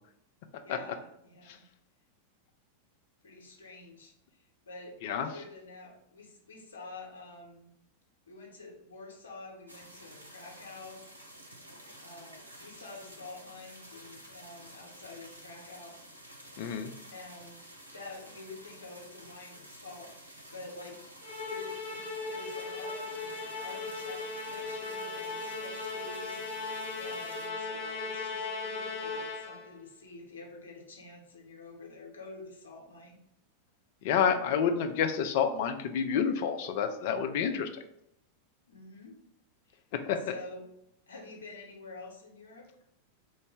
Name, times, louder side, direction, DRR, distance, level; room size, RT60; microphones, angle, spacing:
voice 1, 0.6-1.6 3.2-7.7 8.3-11.0 12.0-16.0 17.1-17.6 17.9-21.0 21.5-33.2 38.7-39.1 39.7-39.8 40.2-40.7 41.1-42.7, left 3 dB, 70° left, -1 dB, 0.9 m, -48 dB
voice 2, 5.0-5.4 16.6-16.9 34.0-37.7 39.9-40.4, left 7 dB, 50° left, 7 dB, 0.4 m, -29 dB
sound 1, 9.7-27.5, right 1 dB, 80° right, 0.6 m, -51 dB
Musical instrument, 21.2-29.7, left 3 dB, 5° right, 1.5 m, -37 dB
3.9 x 2.1 x 3.4 m, 0.77 s
figure-of-eight pair, 90°, 0 cm